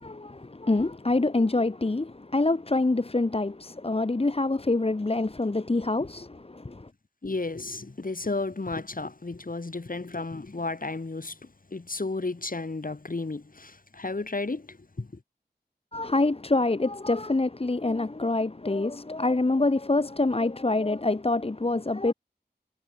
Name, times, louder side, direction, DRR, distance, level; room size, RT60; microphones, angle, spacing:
voice 1, 0.0-6.9 15.9-22.1, left 2 dB, 35° left, 1.1 m, -26 dB
voice 2, 7.2-11.4 11.7-15.1, left 3 dB, 55° left, 2.8 m, -33 dB
wide cardioid pair, 60°, 17 cm